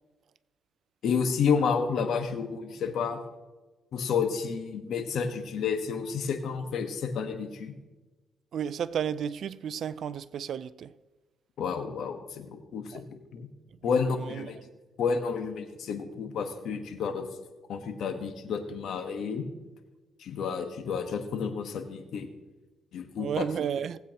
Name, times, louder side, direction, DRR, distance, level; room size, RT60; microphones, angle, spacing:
voice 1, 1.0-3.2 3.9-7.7 11.6-13.1 13.3-13.5 13.8-14.6 15.0-17.3 17.7-19.5 20.2-22.3 22.9-23.5, left 6 dB, 70° left, 1.3 m, -30 dB
voice 2, 8.5-10.9 12.9-13.0 13.8-14.5 23.2-24.0, right 8 dB, 65° right, 0.4 m, -33 dB
18.5 x 8.4 x 2.9 m
cardioid pair, 90°, 0 cm